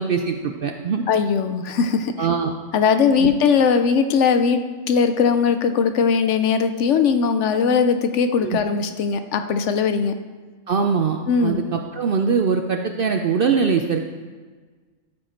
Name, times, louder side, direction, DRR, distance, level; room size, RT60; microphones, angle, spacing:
voice 1, 0.0-1.0 2.2-2.5 3.2-3.3 8.4-8.6 10.7-14.0, right 5 dB, 60° right, 5 dB, 0.6 m, -22 dB
voice 2, 1.1-2.3 2.7-4.6 4.9-10.1 11.3-11.6, left 6 dB, 65° left, 9 dB, 0.8 m, -19 dB
13.0 x 5.3 x 4.4 m, 1.4 s
omnidirectional pair, 1.4 m